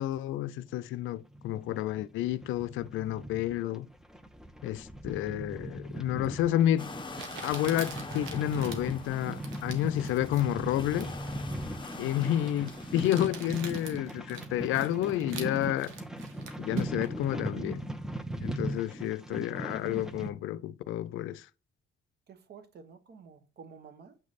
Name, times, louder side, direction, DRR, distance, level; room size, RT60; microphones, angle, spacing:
voice 1, 0.0-3.9 4.6-6.9 7.4-11.1 12.0-15.9 16.6-17.8 18.4-21.5, left 12 dB, 85° left, 0.4 m, -30 dB
sound 1, 1.0-20.3, right 1 dB, 5° right, 0.6 m, -39 dB
Crumpling crinkling, 6.2-6.3 7.2-17.2, right 5 dB, 85° right, 1.1 m, -45 dB
sound 2, 6.8-13.2, left 3 dB, 25° left, 0.9 m, -45 dB
voice 2, 22.3-24.2, right 6 dB, 55° right, 1.0 m, -51 dB
7.6 x 3.2 x 4.0 m
cardioid pair, 90°, 20 cm